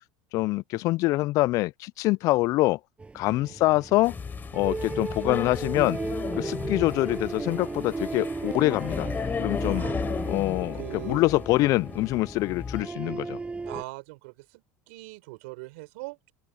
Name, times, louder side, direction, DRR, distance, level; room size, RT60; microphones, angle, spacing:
voice 1, 0.3-2.8 3.1-4.1 4.5-6.0 6.4-9.1 9.4-9.8 10.3-10.8 11.0-13.4, left 19 dB, 55° left, 0.4 m, -25 dB
sound 1, 3.0-13.8, right 3 dB, 15° right, 7.9 m, -35 dB
voice 2, 3.2-3.6 9.6-9.9 10.7-11.2 13.7-16.3, right 25 dB, 75° right, 4.6 m, -41 dB
sound 2, 4.0-12.8, left 6 dB, 30° left, 6.8 m, -35 dB
open air
supercardioid pair, 95°, 7 cm